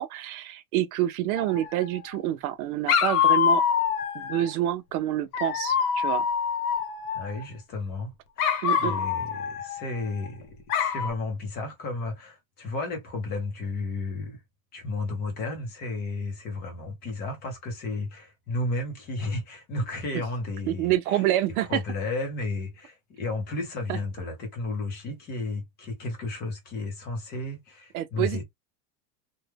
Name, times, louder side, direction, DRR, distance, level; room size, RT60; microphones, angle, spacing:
voice 1, 0.0-3.6 4.1-6.3 8.6-9.0 20.7-21.8 23.9-24.0 27.9-28.4, right 13 dB, 60° right, 0.6 m, -27 dB
Dog, 1.4-2.2 2.9-4.5 5.3-7.4 8.4-10.3 10.7-11.1, left 8 dB, 70° left, 1.0 m, -26 dB
voice 2, 7.1-14.4 14.7-21.2 21.7-28.4, left 2 dB, 20° left, 0.7 m, -33 dB
3.2 x 2.2 x 3.3 m
supercardioid pair, 175°, 48 cm